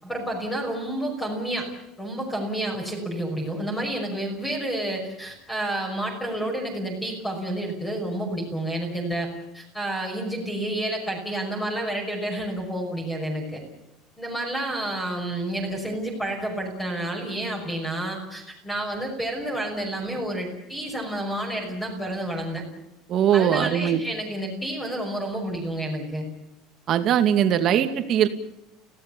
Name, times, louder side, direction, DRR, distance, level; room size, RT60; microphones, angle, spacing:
voice 1, 0.0-1.7 2.0-9.3 9.5-13.6 14.2-22.6 23.3-26.2, right 1 dB, 10° left, 1 dB, 5.8 m, -30 dB
voice 2, 23.1-24.0 26.9-28.3, right 10 dB, 40° right, 8 dB, 2.4 m, -20 dB
30.0 x 17.0 x 7.3 m, 0.89 s
cardioid pair, 165°, 0 cm